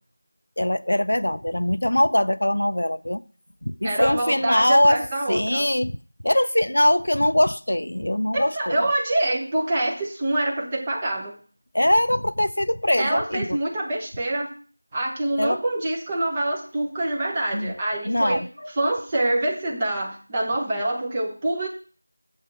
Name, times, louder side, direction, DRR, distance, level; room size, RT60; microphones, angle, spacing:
voice 1, 0.6-3.2 3.6-6.0 6.2-8.9 11.7-13.6 15.4-15.6 17.5-17.7 18.0-18.7, left 1 dB, 75° left, 0.5 m, -22 dB
voice 2, 3.8-5.7 8.3-11.3 13.0-14.5 14.9-18.4 18.8-21.7, right 1 dB, 15° right, 1.0 m, -25 dB
7.4 x 4.4 x 6.8 m
figure-of-eight pair, 175°, 0 cm